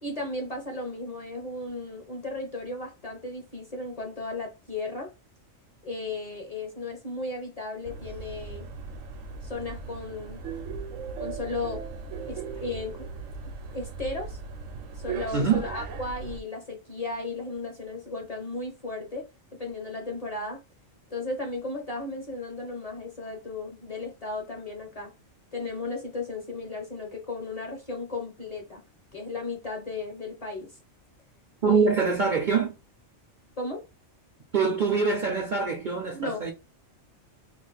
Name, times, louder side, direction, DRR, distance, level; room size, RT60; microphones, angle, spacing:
voice 1, 0.0-5.1 5.8-8.7 9.4-10.4 11.2-11.8 12.3-13.1 13.7-14.4 14.9-19.3 19.6-20.6 21.1-25.1 25.5-28.8 29.1-30.8 31.6-32.0 33.6-33.8 36.1-36.4, left 2 dB, 35° left, 0.7 m, -35 dB
sound 1, 7.8-16.4, right 5 dB, 80° right, 1.0 m, -38 dB
voice 2, 15.3-15.6 31.6-32.7 34.5-36.5, right 5 dB, 50° right, 0.6 m, -24 dB
2.5 x 2.4 x 3.9 m
omnidirectional pair, 1.3 m